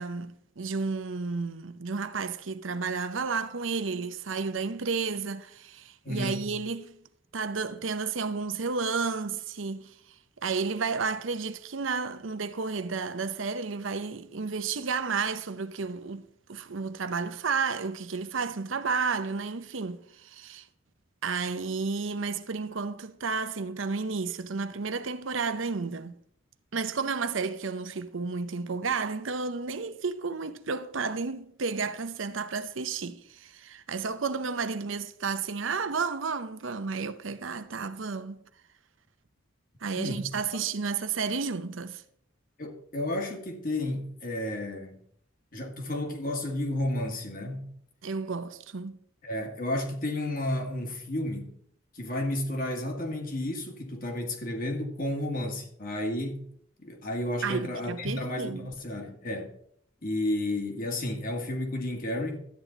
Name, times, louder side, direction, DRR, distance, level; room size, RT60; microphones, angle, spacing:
voice 1, 0.0-7.0 7.3-9.9 10.4-20.7 21.2-26.2 26.7-38.4 39.8-42.0 48.0-49.0 57.4-58.7, right 4 dB, 80° right, 0.8 m, -32 dB
voice 2, 6.0-6.4 40.0-40.3 42.6-45.0 45.5-47.7 49.2-51.5 51.9-56.5 56.8-59.5 60.0-62.4, left 1 dB, 45° left, 1.9 m, -32 dB
12.5 x 9.1 x 3.9 m
head